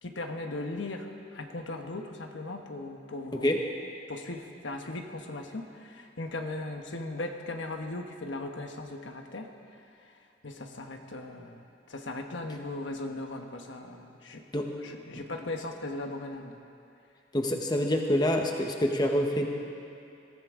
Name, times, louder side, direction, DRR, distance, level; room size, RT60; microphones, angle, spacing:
voice 1, 0.0-3.5 4.1-9.5 10.0-14.4 14.8-16.6, left 2 dB, 85° left, 4 dB, 1.1 m, -38 dB
voice 2, 17.3-19.5, left 1 dB, 20° left, 2 dB, 1.0 m, -26 dB
22.0 x 15.5 x 3.7 m, 2.6 s
head